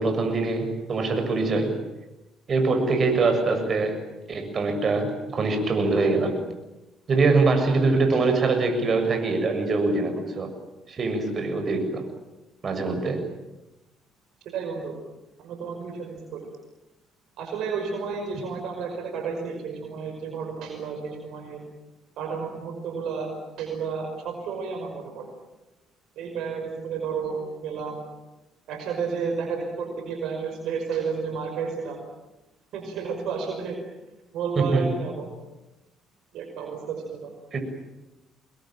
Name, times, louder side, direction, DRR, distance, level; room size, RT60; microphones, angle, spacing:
voice 1, 0.0-1.8 2.5-4.0 4.3-6.4 7.1-10.5 10.9-12.1 12.6-13.3 34.6-34.9 37.5-37.6, right 3 dB, 45° right, 5 dB, 7.3 m, -23 dB
voice 2, 14.5-15.0 15.4-16.5 17.4-21.6 22.2-23.3 23.6-25.3 26.2-28.0 28.7-32.0 32.7-33.8 34.3-35.3 36.3-37.3, right 5 dB, 70° right, 4 dB, 5.5 m, -31 dB
27.5 x 21.5 x 9.1 m, 0.98 s
hypercardioid pair, 55°, 0 cm